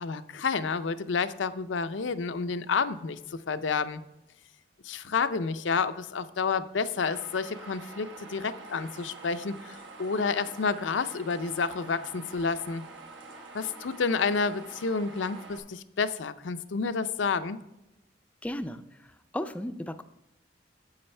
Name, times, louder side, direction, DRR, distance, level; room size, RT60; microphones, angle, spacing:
voice 1, 0.0-4.0 4.8-12.8 13.5-17.6, left 5 dB, 90° left, 12 dB, 0.5 m, -30 dB
sound 1, 7.0-15.6, right 3 dB, 90° right, 1.2 m, -46 dB
voice 2, 18.4-18.8 19.3-20.0, left 1 dB, 5° left, 10 dB, 0.3 m, -34 dB
9.7 x 7.8 x 3.3 m, 0.92 s
head